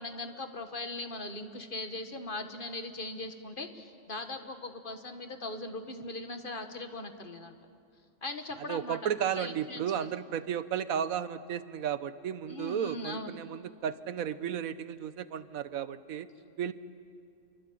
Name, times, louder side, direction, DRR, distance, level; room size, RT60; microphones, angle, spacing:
voice 1, 0.0-7.6 8.2-10.0 12.5-13.3, left 2 dB, 40° left, 6 dB, 1.7 m, -40 dB
voice 2, 8.7-16.3 16.6-16.7, right 9 dB, 85° right, 13 dB, 1.3 m, -33 dB
28.5 x 24.0 x 8.7 m, 2.4 s
omnidirectional pair, 1.4 m